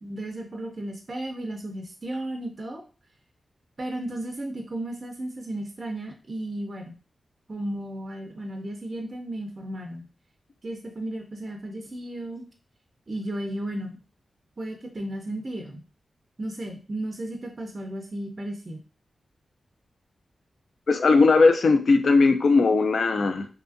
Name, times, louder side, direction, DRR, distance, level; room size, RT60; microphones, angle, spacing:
voice 1, 0.0-2.8 3.8-6.9 7.5-10.1 10.6-12.4 13.1-14.0 14.6-15.8 16.4-18.8, right 1 dB, 35° right, 2 dB, 0.4 m, -34 dB
voice 2, 20.9-23.5, left 3 dB, 60° left, 7 dB, 0.4 m, -18 dB
2.6 x 2.4 x 2.5 m, 0.35 s
wide cardioid pair, 130°, 0 cm